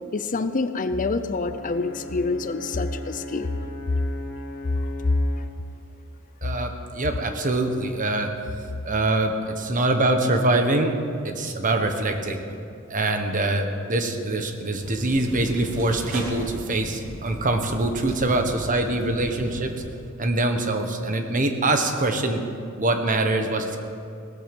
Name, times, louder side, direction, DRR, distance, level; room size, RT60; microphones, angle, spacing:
voice 1, 0.1-3.5, left 3 dB, 40° left, 11 dB, 0.6 m, -27 dB
Brass instrument, 1.3-5.6, left 1 dB, 60° left, 1.9 m, -38 dB
voice 2, 6.4-8.3 8.8-10.9 11.2-12.4 12.9-19.7 20.2-22.4 22.8-23.8, right 2 dB, 40° right, 6 dB, 1.3 m, -24 dB
sound 1, 14.8-19.8, equal, 85° right, 3.2 m, -37 dB
17.5 x 13.5 x 5.4 m, 2.5 s
head